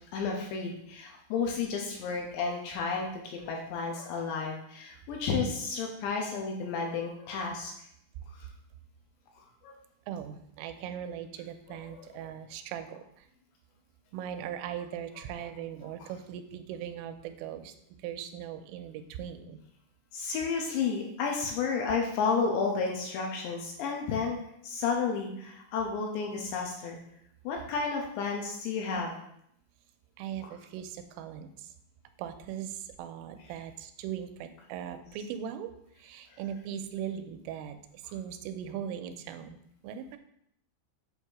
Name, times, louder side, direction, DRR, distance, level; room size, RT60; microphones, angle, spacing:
voice 1, 0.1-7.7 8.4-8.5 9.6-9.7 11.7-12.0 20.1-24.4 24.6-27.0 27.4-29.2 36.3-36.4, left 5 dB, 80° left, 0 dB, 2.8 m, -32 dB
voice 2, 10.1-13.3 14.1-17.7 18.0-19.6 30.2-31.7 32.2-39.6 39.8-40.2, right 9 dB, 85° right, 8 dB, 3.1 m, -39 dB
7.9 x 2.7 x 6.0 m, 0.72 s
omnidirectional pair, 5.6 m